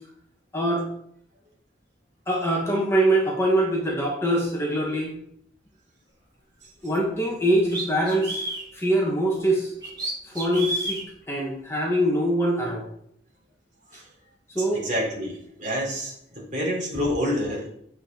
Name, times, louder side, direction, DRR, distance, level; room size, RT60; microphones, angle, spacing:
voice 1, 0.5-0.8 2.3-5.1 6.8-8.4 8.7-9.7 10.3-11.0 11.3-12.8 14.5-14.9, right 1 dB, 15° left, -2 dB, 1.5 m, -23 dB
sound 1, 6.9-7.0 7.7-8.7 9.8-11.0, right 1 dB, 25° right, 3.1 m, -30 dB
voice 2, 14.7-17.7, equal, 45° right, -4 dB, 3.9 m, -28 dB
7.9 x 7.8 x 3.9 m, 0.68 s
head